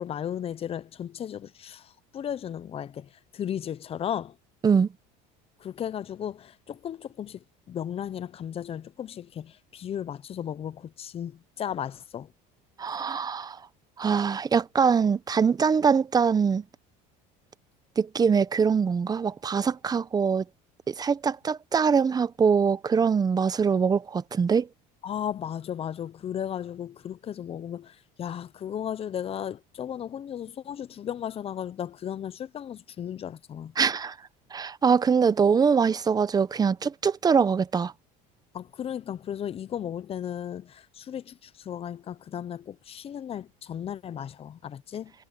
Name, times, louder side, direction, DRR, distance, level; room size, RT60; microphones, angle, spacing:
voice 1, 0.0-4.4 5.6-12.3 25.0-33.7 38.5-45.1, left 9 dB, 30° left, 0.7 m, -35 dB
voice 2, 12.8-13.6 14.0-16.6 18.0-20.4 20.9-24.7 33.8-34.2 34.5-37.9, right 6 dB, 20° right, 0.7 m, -23 dB
cardioid pair, 120°, 19 cm